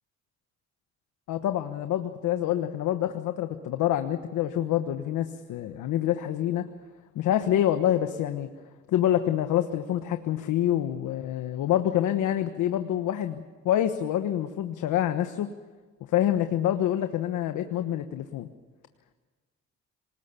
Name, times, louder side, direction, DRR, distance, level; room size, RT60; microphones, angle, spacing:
voice 1, 1.3-6.7 7.1-8.5 8.9-15.5 16.1-18.5, left 11 dB, 85° left, 8 dB, 1.3 m, -26 dB
27.0 x 19.0 x 6.9 m, 1.4 s
cardioid pair, 90°, 30 cm